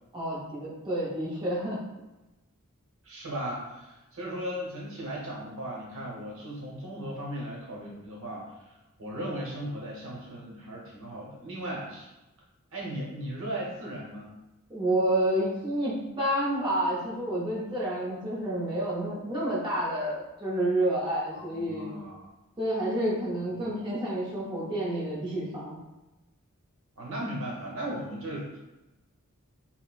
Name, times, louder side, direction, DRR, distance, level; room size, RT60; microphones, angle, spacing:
voice 1, 0.1-1.8 14.7-22.0 22.6-25.8, right 1 dB, 20° right, -7 dB, 0.6 m, -29 dB
voice 2, 3.0-12.1 12.7-14.3 21.3-22.3 23.5-23.7 27.0-28.6, right 1 dB, 65° right, -3 dB, 0.9 m, -37 dB
4.2 x 2.0 x 2.3 m, 1.0 s
head